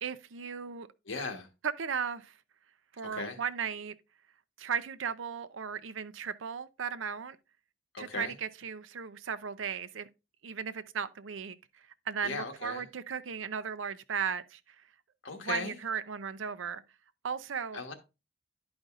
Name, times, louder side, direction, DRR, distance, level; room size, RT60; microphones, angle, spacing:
voice 1, 0.0-0.9 1.6-2.3 2.9-4.0 4.6-7.4 8.0-10.1 10.4-11.6 12.1-14.8 15.4-16.8 17.2-17.8, right 6 dB, 85° right, 0.6 m, -36 dB
voice 2, 1.1-1.5 3.0-3.4 7.9-8.3 12.2-12.8 15.2-15.8 17.7-17.9, left 3 dB, 80° left, 1.4 m, -38 dB
11.0 x 5.1 x 2.5 m
head